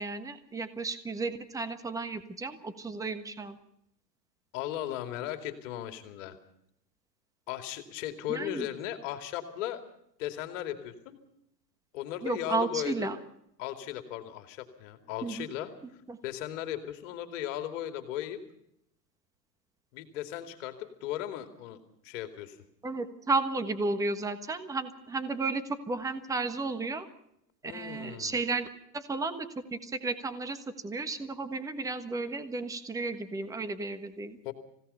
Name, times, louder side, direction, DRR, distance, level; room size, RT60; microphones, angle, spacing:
voice 1, 0.0-3.6 8.3-8.7 12.2-13.2 15.2-15.5 16.1-16.2 22.8-27.1 27.6-28.7 28.9-34.4, right 3 dB, 5° right, 11 dB, 1.3 m, -33 dB
voice 2, 4.5-6.4 7.5-9.8 10.2-11.2 11.9-13.1 13.6-15.7 16.2-18.4 19.9-22.6 27.6-28.3 34.4-34.5, left 12 dB, 50° left, 7 dB, 2.7 m, -37 dB
27.5 x 17.0 x 5.6 m, 0.76 s
hypercardioid pair, 135°, 50 cm